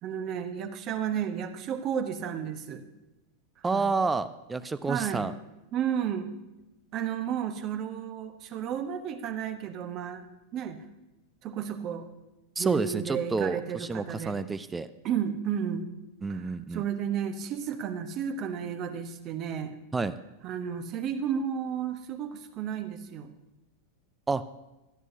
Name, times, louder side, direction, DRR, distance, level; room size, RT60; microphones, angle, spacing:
voice 1, 0.0-2.8 3.7-3.9 4.9-5.3 5.7-6.3 6.9-10.2 10.5-10.8 11.4-12.1 12.6-14.4 15.0-15.9 16.3-19.8 20.4-23.3, right 8 dB, 35° right, 9 dB, 1.1 m, -32 dB
voice 2, 3.6-5.3 12.6-14.9 16.2-16.8 19.9-20.2 24.3-24.4, right 4 dB, 10° right, 14 dB, 0.4 m, -29 dB
17.0 x 12.0 x 2.7 m, 1.0 s
figure-of-eight pair, 90°, 0 cm